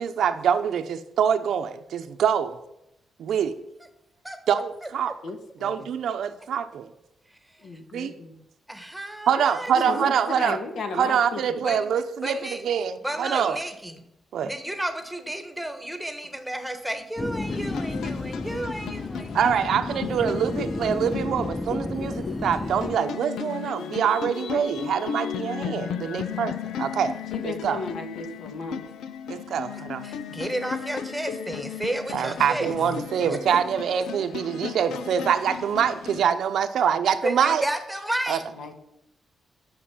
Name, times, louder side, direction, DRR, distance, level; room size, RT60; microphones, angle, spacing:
voice 1, 0.0-2.6 3.2-3.6 4.5-5.1 5.6-6.9 7.9-8.1 9.3-10.6 10.9-13.6 14.3-14.5 19.3-27.2 27.4-27.8 29.3-30.1 32.1-37.6 38.3-38.4, right 8 dB, 65° right, 0.9 m, -25 dB
voice 2, 5.2-5.9 7.6-8.4 9.7-11.6 27.3-28.8 38.5-38.7, left 3 dB, 65° left, 1.9 m, -35 dB
voice 3, 8.7-9.7 11.6-11.9 12.2-12.6 13.0-14.0 14.4-19.4 30.0-32.7 33.3-33.4 37.2-38.4, right 1 dB, 5° right, 1.3 m, -32 dB
sound 1, 17.2-23.0, left 2 dB, 15° left, 0.4 m, -32 dB
sound 2, 17.5-36.2, left 8 dB, 85° left, 0.7 m, -35 dB
11.0 x 6.5 x 7.3 m
wide cardioid pair, 165°, 0 cm